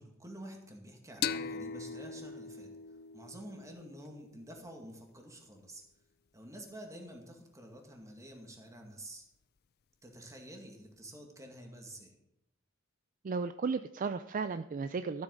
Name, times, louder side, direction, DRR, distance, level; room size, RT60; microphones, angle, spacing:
voice 1, 0.0-2.8 3.1-5.8 6.3-9.2 10.0-12.1, right 1 dB, 15° right, 2 dB, 2.2 m, -49 dB
sound 1, 1.2-4.6, left 6 dB, 50° left, 0.5 m, -40 dB
voice 2, 13.2-15.2, right 4 dB, 40° right, 11 dB, 0.4 m, -34 dB
13.5 x 8.1 x 5.4 m, 0.89 s
head